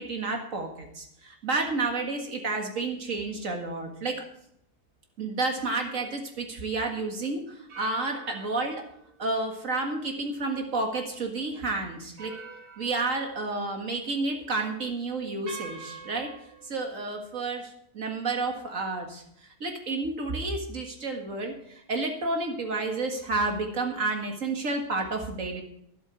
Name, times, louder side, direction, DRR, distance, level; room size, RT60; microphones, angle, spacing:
voice 1, 0.0-4.2 5.2-8.8 9.2-12.3 12.8-16.3 16.6-19.2 19.6-25.6, right 3 dB, 55° right, 3 dB, 2.2 m, -30 dB
sound 1, 6.2-6.4 7.7-11.1 11.5-11.6 12.2-14.0 14.4-14.6 15.5-16.7, right 5 dB, 85° right, 3.2 m, -47 dB
12.5 x 11.0 x 4.8 m, 0.73 s
omnidirectional pair, 1.6 m